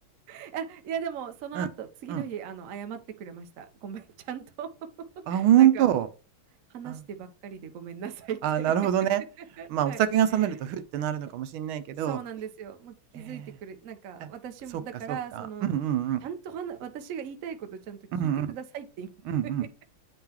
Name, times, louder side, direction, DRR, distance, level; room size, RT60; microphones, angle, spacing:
voice 1, 0.3-4.7 5.3-6.0 6.7-8.7 9.4-10.0 10.3-10.6 12.0-15.7 16.2-19.1, right 8 dB, 55° right, 0.9 m, -38 dB
voice 2, 5.3-6.1 6.8-7.0 8.4-9.2 9.7-12.2 13.1-13.5 14.2-14.3 15.1-16.2 18.1-18.5 19.3-19.6, right 11 dB, 85° right, 1.5 m, -25 dB
9.8 x 3.7 x 2.9 m
omnidirectional pair, 2.2 m